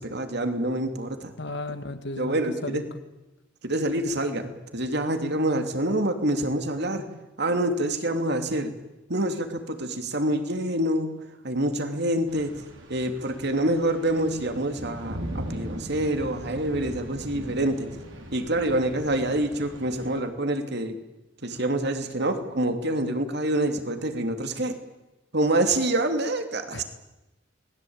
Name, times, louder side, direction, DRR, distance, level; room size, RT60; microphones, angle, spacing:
voice 1, 0.0-1.3 2.2-2.8 3.6-7.0 7.4-8.7 9.1-11.1 11.4-12.5 12.9-17.9 18.3-21.0 21.4-24.8 25.3-26.8, right 1 dB, 60° right, 7 dB, 3.0 m, -26 dB
voice 2, 1.4-2.8 26.7-26.8, left 2 dB, 65° left, 9 dB, 2.1 m, -34 dB
sound 1, 12.3-20.2, equal, 75° right, 5.0 m, -39 dB
29.5 x 20.5 x 8.9 m, 1.0 s
head